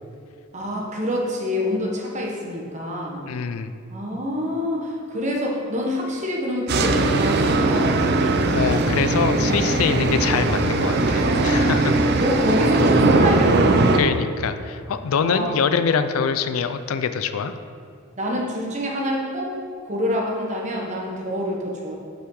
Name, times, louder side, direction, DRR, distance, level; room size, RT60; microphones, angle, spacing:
voice 1, 0.5-3.3 3.9-8.1 9.2-10.2 11.8-14.0 15.2-15.5 18.2-19.5 19.8-21.9, left 1 dB, 35° right, -2 dB, 1.1 m, -27 dB
voice 2, 3.3-3.7 8.5-12.0 13.9-17.5, left 6 dB, 70° left, 11 dB, 0.4 m, -24 dB
sound 1, 6.7-14.0, right 2 dB, 50° right, 0.5 m, -19 dB
7.9 x 5.6 x 3.9 m, 2.3 s
head